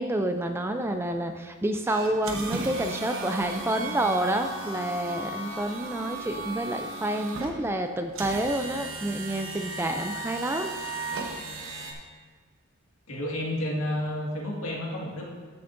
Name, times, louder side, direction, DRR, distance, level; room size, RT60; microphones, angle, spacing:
voice 1, 0.0-10.7, right 1 dB, 10° right, 6 dB, 0.3 m, -28 dB
sound 1, 1.9-11.9, right 2 dB, 65° right, 1.1 m, -36 dB
voice 2, 13.1-15.2, left 1 dB, 80° left, -3 dB, 1.9 m, -30 dB
13.5 x 7.1 x 2.6 m, 1.5 s
head